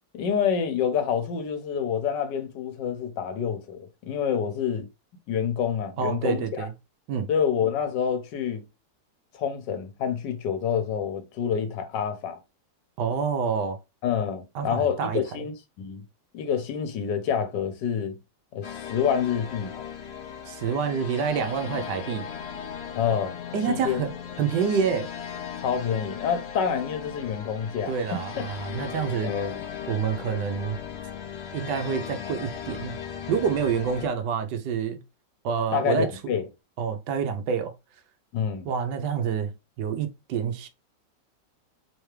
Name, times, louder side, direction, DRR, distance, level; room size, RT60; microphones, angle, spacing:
voice 1, 0.1-4.9 5.3-6.7 7.3-8.6 9.3-12.4 14.0-16.0 16.3-18.2 18.5-19.7 22.9-23.3 23.6-24.0 25.6-28.2 29.2-29.6 35.7-36.5 38.3-38.7, left 7 dB, 85° left, 1.5 m, -27 dB
voice 2, 6.0-6.7 7.1-7.3 13.0-13.8 14.5-15.2 20.5-22.3 23.5-24.1 24.4-25.1 27.9-29.3 29.9-30.8 31.5-32.9 33.3-35.0 35.4-36.1 36.8-37.7 38.6-39.5 39.8-40.7, right 6 dB, 75° right, 1.3 m, -27 dB
sound 1, 18.6-34.1, left 8 dB, 65° left, 0.6 m, -37 dB
3.5 x 3.4 x 3.1 m
omnidirectional pair, 1.9 m